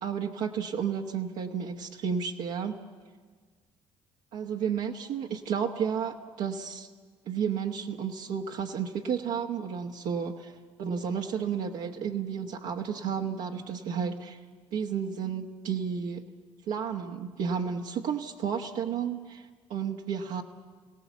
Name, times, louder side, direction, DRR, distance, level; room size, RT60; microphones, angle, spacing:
voice 1, 0.0-2.8 4.3-6.9 7.3-10.5 10.8-14.4 14.7-16.2 16.7-20.4, right 7 dB, 70° right, -1 dB, 1.3 m, -32 dB
27.5 x 17.5 x 7.2 m, 1.5 s
hypercardioid pair, 55°, 14 cm